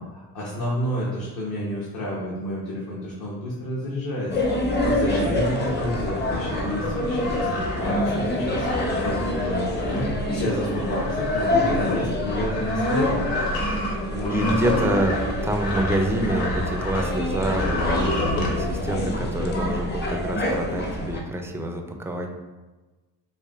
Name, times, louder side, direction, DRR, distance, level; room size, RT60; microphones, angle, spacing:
voice 1, 0.3-4.4 4.8-13.2 14.0-14.8, left 1 dB, 50° left, -5 dB, 1.0 m, -30 dB
sound 1, 4.3-21.2, left 1 dB, 25° left, 0.7 m, -26 dB
sound 2, 5.7-17.1 17.4-18.5, left 2 dB, 85° left, 0.9 m, -32 dB
voice 2, 14.3-22.3, right 1 dB, 5° right, 3 dB, 0.3 m, -27 dB
4.8 x 2.6 x 2.4 m, 1.2 s
supercardioid pair, 80°, 42 cm